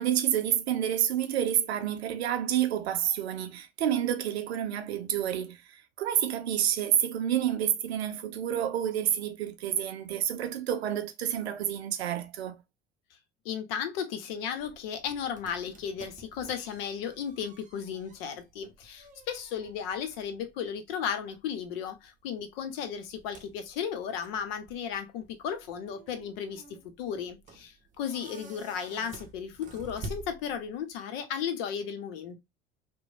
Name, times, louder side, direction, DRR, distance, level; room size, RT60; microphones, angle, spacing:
voice 1, 0.0-12.6, right 10 dB, 85° right, 0.5 m, -29 dB
voice 2, 13.4-32.4, left 7 dB, 70° left, 0.7 m, -35 dB
sound 1, 14.6-31.0, right 2 dB, 25° right, 0.6 m, -50 dB
2.9 x 2.1 x 2.4 m
hypercardioid pair, 70°, 31 cm